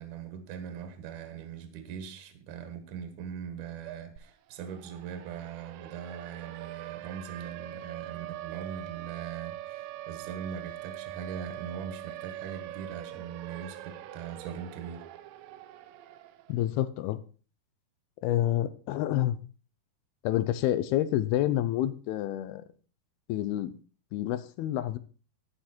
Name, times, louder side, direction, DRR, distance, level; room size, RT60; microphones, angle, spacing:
voice 1, 0.0-15.1, right 7 dB, 60° right, 7 dB, 2.7 m, -41 dB
Siren, 4.2-4.3 4.6-16.6, right 15 dB, 80° right, 2.1 m, -43 dB
voice 2, 16.5-17.2 18.2-19.4 20.2-22.7 23.3-23.7 24.1-25.0, left 13 dB, 80° left, 14 dB, 2.6 m, -28 dB
10.0 x 10.0 x 4.4 m, 0.37 s
omnidirectional pair, 4.6 m